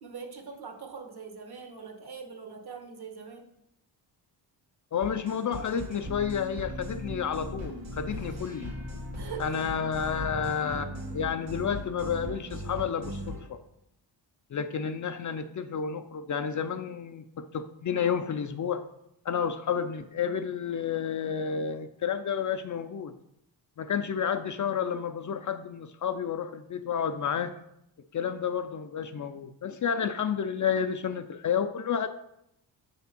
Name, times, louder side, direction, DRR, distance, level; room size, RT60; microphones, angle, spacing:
voice 1, 0.0-3.5 8.2-8.3 9.1-9.8, right 6 dB, 55° right, 3 dB, 1.4 m, -42 dB
voice 2, 4.9-8.7 9.4-13.6 14.5-18.8 19.2-23.1 23.8-27.5 28.1-32.1, left 7 dB, 45° left, 9 dB, 0.4 m, -30 dB
sound 1, 5.0-13.5, equal, 85° right, 1.8 m, -38 dB
7.5 x 3.5 x 5.9 m, 0.79 s
wide cardioid pair, 120°, 45 cm